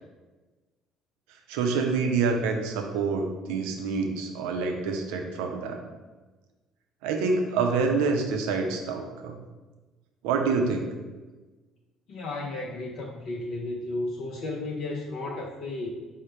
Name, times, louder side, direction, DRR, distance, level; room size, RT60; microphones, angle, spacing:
voice 1, 1.5-5.8 7.0-9.4 10.2-10.9, right 4 dB, 65° right, 3 dB, 0.6 m, -27 dB
voice 2, 12.1-15.9, left 2 dB, 55° left, -1 dB, 0.5 m, -33 dB
5.2 x 2.1 x 4.7 m, 1.2 s
figure-of-eight pair, 55°, 0 cm